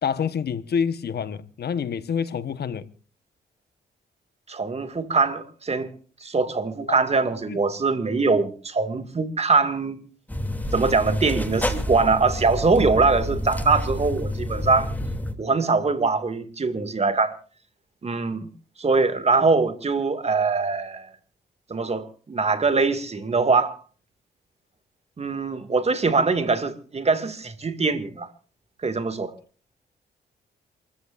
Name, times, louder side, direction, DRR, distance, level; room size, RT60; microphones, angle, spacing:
voice 1, 0.0-2.9 6.9-7.0 7.5-7.6, left 7 dB, 60° left, 1.3 m, -27 dB
voice 2, 4.5-5.9 6.2-10.0 10.7-14.9 15.4-17.4 18.0-18.5 18.8-21.1 21.7-23.8 25.2-28.3 28.8-29.3, right 4 dB, 35° right, 2.3 m, -22 dB
sound 1, 10.3-15.3, left 1 dB, 10° left, 2.9 m, -28 dB
28.0 x 14.5 x 2.6 m
cardioid pair, 75°, 19 cm